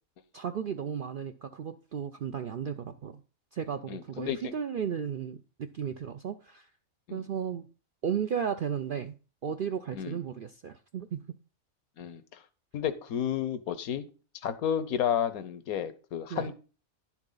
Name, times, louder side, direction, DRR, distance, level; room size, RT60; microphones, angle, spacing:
voice 1, 0.3-3.2 3.5-6.7 7.1-7.7 8.0-9.2 9.4-11.2 16.3-16.5, right 7 dB, 65° right, 9 dB, 0.5 m, -34 dB
voice 2, 3.9-4.4 7.1-7.2 9.9-10.2 12.0-12.4 12.7-14.1 14.3-16.5, left 9 dB, 80° left, 13 dB, 1.3 m, -31 dB
10.5 x 7.3 x 3.9 m, 0.36 s
omnidirectional pair, 1.5 m